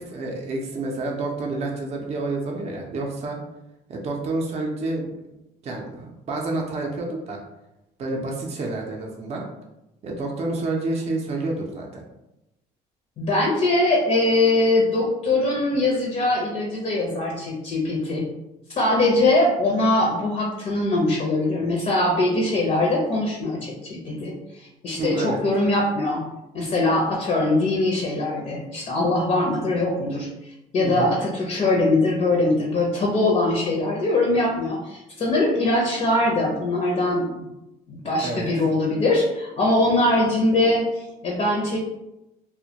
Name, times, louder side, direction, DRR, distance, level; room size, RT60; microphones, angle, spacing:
voice 1, 0.0-3.4 3.9-5.1 5.6-7.4 8.0-9.4 10.0-12.0 25.0-25.4 30.8-31.1 38.0-38.5, right 2 dB, 40° right, 0 dB, 0.5 m, -29 dB
voice 2, 13.2-18.2 18.8-24.3 24.8-26.2 26.5-30.3 30.7-37.3 37.9-41.8, left 2 dB, 45° left, -2 dB, 0.6 m, -22 dB
2.1 x 2.1 x 2.8 m, 0.90 s
cardioid pair, 110°, 17 cm